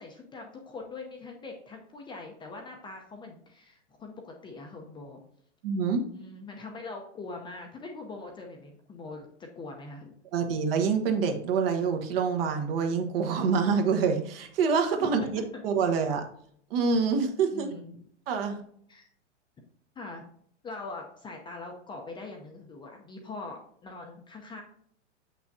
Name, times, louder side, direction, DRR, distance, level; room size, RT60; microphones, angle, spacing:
voice 1, 0.0-5.2 6.1-10.1 15.0-15.6 17.5-18.0 18.9-19.1 20.0-20.3 20.6-24.6, left 3 dB, 15° left, 1 dB, 0.6 m, -42 dB
voice 2, 5.6-6.0 10.3-16.2 16.7-17.7 18.3-18.6, right 5 dB, 50° right, 5 dB, 1.2 m, -26 dB
7.1 x 6.0 x 2.7 m, 0.63 s
hypercardioid pair, 125°, 36 cm